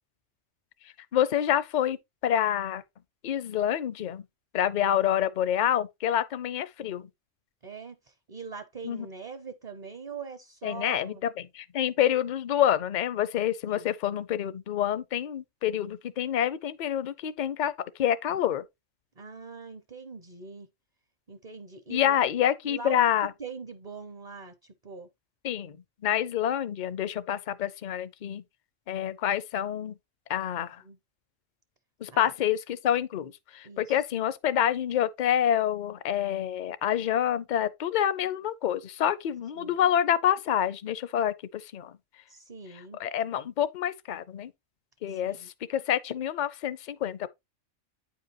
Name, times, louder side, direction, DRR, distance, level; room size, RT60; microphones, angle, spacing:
voice 1, 1.1-2.8 3.2-4.3 4.5-7.1 8.8-9.1 10.6-17.7 18.0-18.6 21.9-23.3 25.4-25.8 26.0-28.4 28.9-29.9 30.3-30.8 32.0-41.9 43.0-44.5 45.0-47.3, left 10 dB, 50° left, 0.6 m, -27 dB
voice 2, 7.6-11.2 13.7-13.9 19.2-20.7 21.3-22.2 22.6-25.1 30.8-31.0 32.1-32.3 33.6-33.9 39.6-39.8 42.3-43.0 45.1-45.5, right 5 dB, 40° right, 0.7 m, -42 dB
9.2 x 5.2 x 2.9 m
omnidirectional pair, 1.3 m